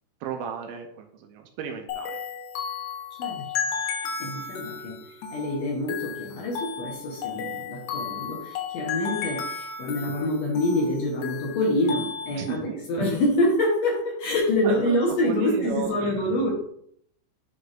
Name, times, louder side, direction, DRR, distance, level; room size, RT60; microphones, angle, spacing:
voice 1, 0.2-2.2 12.3-12.6 13.0-13.1 14.6-16.5, right 8 dB, 90° right, 4 dB, 2.5 m, -34 dB
sound 1, 1.9-12.6, left 6 dB, 80° left, 2.7 m, -34 dB
voice 2, 4.2-5.0 5.3-16.5, left 1 dB, 65° left, -2 dB, 1.9 m, -26 dB
9.6 x 4.7 x 2.6 m, 0.69 s
omnidirectional pair, 4.1 m